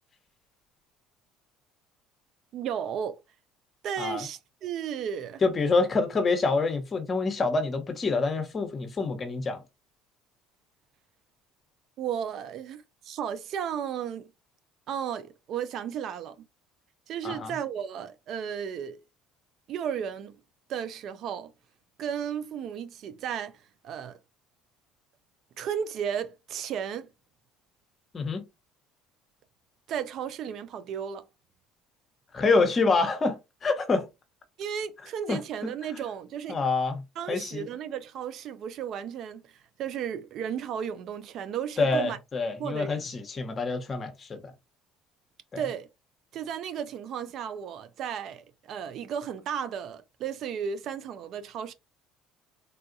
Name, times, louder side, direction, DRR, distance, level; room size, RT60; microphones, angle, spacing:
voice 1, 2.5-3.2 3.8-5.4 12.0-14.3 14.9-16.4 17.1-19.0 19.7-20.4 20.7-21.5 22.0-23.5 23.8-24.2 25.6-27.1 29.9-31.2 34.6-36.6 37.2-42.2 42.6-43.1 45.6-45.9 46.3-51.7, right 8 dB, 60° right, 0.4 m, -34 dB
voice 2, 5.4-9.6 17.2-17.5 28.1-28.4 32.3-34.1 35.3-35.7 36.5-37.0 37.3-37.7 41.8-44.4 45.5-45.6, left 3 dB, 35° left, 0.9 m, -26 dB
3.6 x 2.3 x 2.6 m
supercardioid pair, 95°, 0 cm